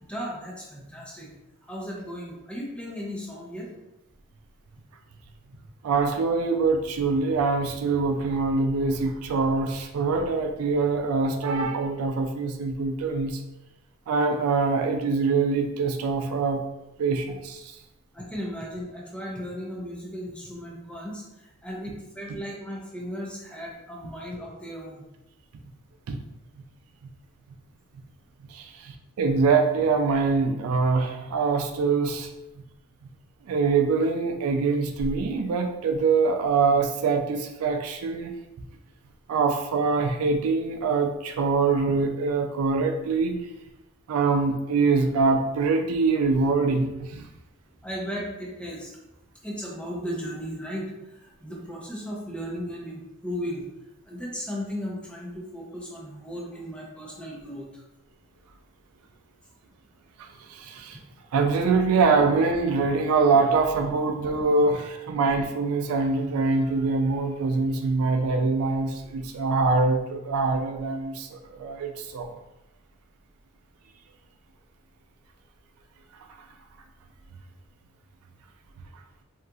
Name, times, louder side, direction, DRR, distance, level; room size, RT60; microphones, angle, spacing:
voice 1, 0.0-1.3 1.6-3.7 18.1-25.1 47.8-49.0 49.4-53.7 54.0-57.8, equal, 5° left, -4 dB, 0.5 m, -36 dB
voice 2, 5.8-13.4 14.1-16.6 17.0-17.8 26.1-26.2 28.5-32.3 33.4-38.3 39.3-43.4 44.1-47.2 60.2-61.0 61.3-72.3, right 4 dB, 90° right, 5 dB, 0.3 m, -24 dB
2.8 x 2.4 x 2.3 m, 0.94 s
head